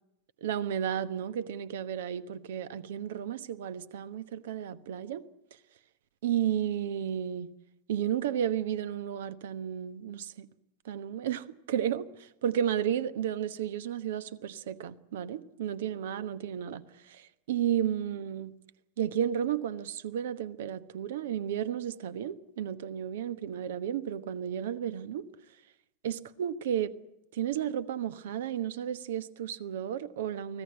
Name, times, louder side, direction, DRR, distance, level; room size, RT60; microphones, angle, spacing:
voice 1, 0.4-5.2 6.2-7.5 7.9-10.5 10.9-12.1 12.4-16.8 17.5-18.5 19.0-25.3 26.0-26.9 27.3-30.6, right 9 dB, 60° right, 1.1 m, -32 dB
24.0 x 17.0 x 8.6 m
figure-of-eight pair, 90°, 0 cm